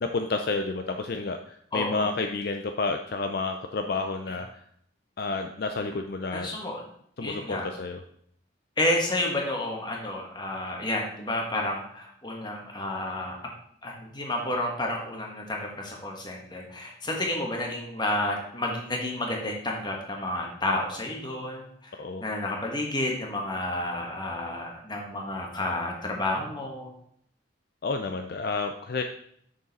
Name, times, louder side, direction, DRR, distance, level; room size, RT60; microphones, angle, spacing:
voice 1, 0.0-4.5 5.2-6.5 7.2-8.0 22.0-22.2 27.8-29.0, left 3 dB, 50° left, 6 dB, 0.4 m, -30 dB
voice 2, 1.7-2.1 4.3-4.4 6.3-6.8 7.2-7.7 8.8-13.4 13.8-26.9, left 1 dB, 20° left, 0 dB, 1.4 m, -30 dB
6.6 x 6.5 x 4.1 m, 0.66 s
head